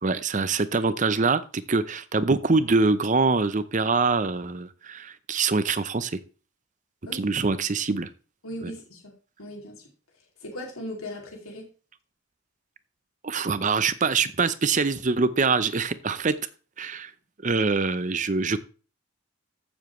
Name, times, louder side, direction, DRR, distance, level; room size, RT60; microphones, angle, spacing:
voice 1, 0.0-6.2 7.1-8.1 8.6-8.7 13.2-16.4 16.8-17.1 17.4-18.6, right 4 dB, 35° right, 14 dB, 0.6 m, -24 dB
voice 2, 8.4-9.1 9.4-9.8 10.4-11.7, left 1 dB, 90° left, 0 dB, 2.7 m, -38 dB
14.5 x 7.2 x 3.2 m, 0.36 s
head